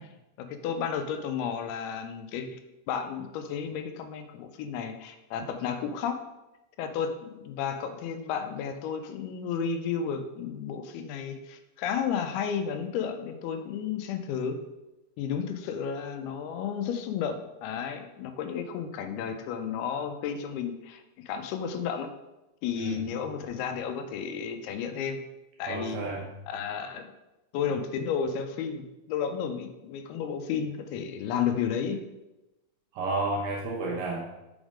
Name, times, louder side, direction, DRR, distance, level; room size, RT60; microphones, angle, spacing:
voice 1, 0.4-2.6 2.9-6.2 6.8-14.6 15.2-22.1 22.6-25.2 25.6-26.0 26.5-27.1 27.5-32.0, left 7 dB, 85° left, 8 dB, 2.5 m, -32 dB
voice 2, 22.8-23.1 25.7-26.3 32.9-34.2, right 2 dB, 75° right, -1 dB, 2.0 m, -31 dB
6.2 x 3.6 x 4.9 m, 0.98 s
omnidirectional pair, 4.5 m